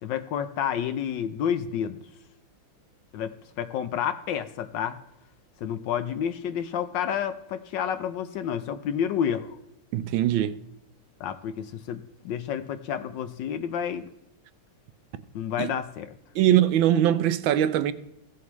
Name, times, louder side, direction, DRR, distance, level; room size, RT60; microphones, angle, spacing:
voice 1, 0.0-2.0 3.1-5.0 5.6-9.6 11.2-14.1 15.3-16.1, left 8 dB, 70° left, 1.2 m, -30 dB
voice 2, 9.9-10.5 15.6-15.7 16.3-17.9, right 11 dB, 75° right, 1.3 m, -21 dB
15.5 x 7.2 x 3.1 m
omnidirectional pair, 2.3 m